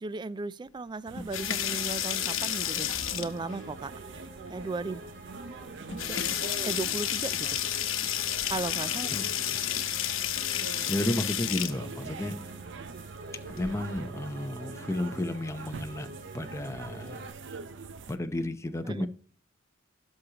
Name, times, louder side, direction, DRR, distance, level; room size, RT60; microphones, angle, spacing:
voice 1, 0.0-3.9 4.5-5.1 5.8-6.3 6.6-7.5 8.5-9.1 18.9-19.1, right 3 dB, 25° right, 0.3 m, -36 dB
sound 1, 1.1-3.6 4.9-5.0 5.4-5.5 5.9-11.8 13.4-14.0, left 11 dB, 85° left, 0.9 m, -31 dB
sound 2, 1.1-18.2, right 4 dB, 65° right, 0.7 m, -44 dB
sound 3, 1.3-17.3, right 1 dB, 50° right, 2.0 m, -48 dB
voice 2, 9.1-9.6 10.9-12.5 13.6-16.1 16.3-17.6 18.1-19.1, left 1 dB, 15° left, 0.7 m, -33 dB
16.5 x 6.4 x 2.9 m
head